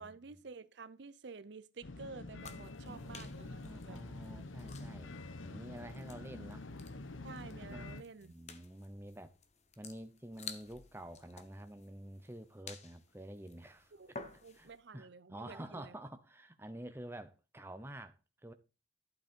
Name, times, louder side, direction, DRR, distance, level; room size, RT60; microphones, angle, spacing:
voice 1, 0.0-4.0 7.2-8.3 13.9-14.1 14.4-16.0, right 4 dB, 65° right, 0.6 m, -51 dB
sound 1, 1.8-8.0, left 2 dB, 90° left, 0.9 m, -47 dB
sound 2, 2.4-14.8, left 5 dB, 35° left, 1.1 m, -54 dB
voice 2, 2.8-6.7 7.7-7.9 8.2-9.3 9.8-13.9 14.5-18.1 18.4-18.5, right 1 dB, 10° right, 0.8 m, -49 dB
12.0 x 8.2 x 4.5 m
head